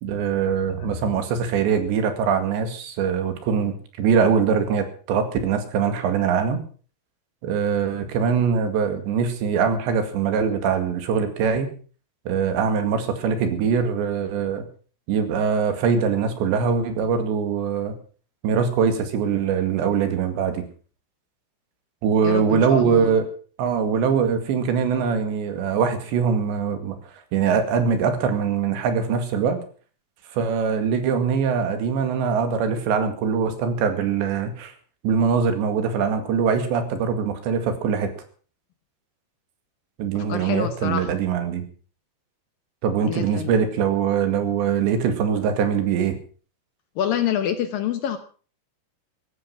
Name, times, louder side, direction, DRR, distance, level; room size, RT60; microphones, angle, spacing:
voice 1, 0.0-6.6 7.4-11.7 12.3-14.7 15.1-18.0 18.4-20.6 22.0-23.3 23.6-27.0 27.3-29.6 30.3-34.7 35.0-38.1 40.0-41.6 42.8-46.2, right 6 dB, 80° right, 8 dB, 4.4 m, -22 dB
voice 2, 22.2-23.1 40.1-41.1 43.0-43.6 47.0-48.2, left 9 dB, 70° left, 10 dB, 2.4 m, -27 dB
15.5 x 13.0 x 6.0 m, 0.41 s
omnidirectional pair, 5.1 m